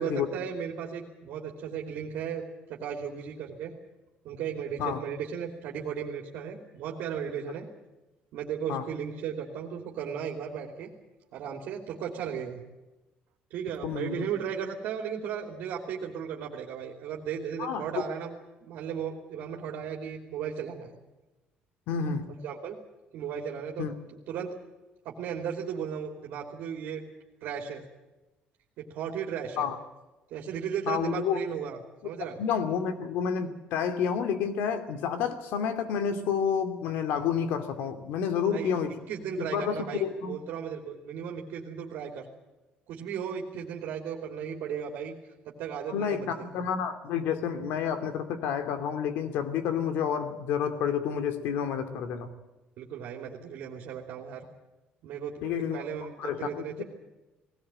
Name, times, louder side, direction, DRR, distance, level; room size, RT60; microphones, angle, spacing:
voice 1, 0.0-3.7 4.2-7.7 8.3-10.9 11.3-12.6 13.5-18.3 18.6-20.9 22.4-22.8 23.1-23.9 24.3-24.6 25.0-27.0 27.4-27.8 28.8-29.7 30.3-31.8 32.0-32.4 38.5-38.7 39.1-42.3 42.9-45.2 45.4-46.5 52.8-54.5 55.0-56.8, right 7 dB, 70° right, 0 dB, 3.0 m, -35 dB
voice 2, 13.8-14.3 17.6-17.8 21.9-22.3 23.8-23.9 29.6-29.8 30.9-31.4 32.4-38.9 39.4-40.4 45.9-52.3 55.4-55.8 56.2-56.8, left 7 dB, 80° left, 8 dB, 2.7 m, -29 dB
19.5 x 18.0 x 8.9 m, 1.1 s
cardioid pair, 170°, 3 cm